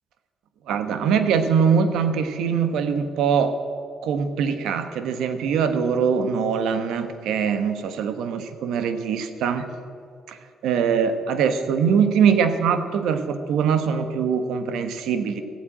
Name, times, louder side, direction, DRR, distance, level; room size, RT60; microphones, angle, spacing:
voice 1, 0.7-3.6 4.0-9.6 10.3-10.4 10.6-15.4, right 6 dB, 85° right, 9 dB, 1.1 m, -22 dB
15.0 x 8.6 x 8.8 m, 2.3 s
cardioid pair, 90°, 0 cm